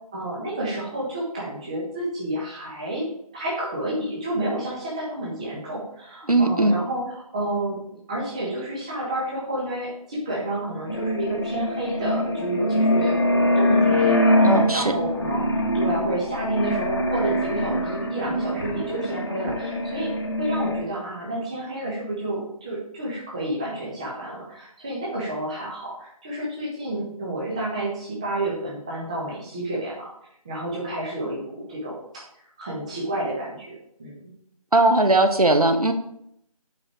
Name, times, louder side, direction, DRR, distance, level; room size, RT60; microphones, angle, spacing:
voice 1, 0.1-3.1 3.3-7.8 8.1-30.1 30.4-32.0 32.6-34.3, right 1 dB, 10° right, -5 dB, 1.2 m, -30 dB
voice 2, 6.3-6.7 14.4-14.9 34.7-35.9, right 2 dB, 75° right, 6 dB, 1.3 m, -18 dB
sound 1, 10.9-20.8, left 1 dB, 45° left, 1.5 m, -23 dB
8.4 x 5.3 x 5.0 m, 0.73 s
figure-of-eight pair, 165°, 19 cm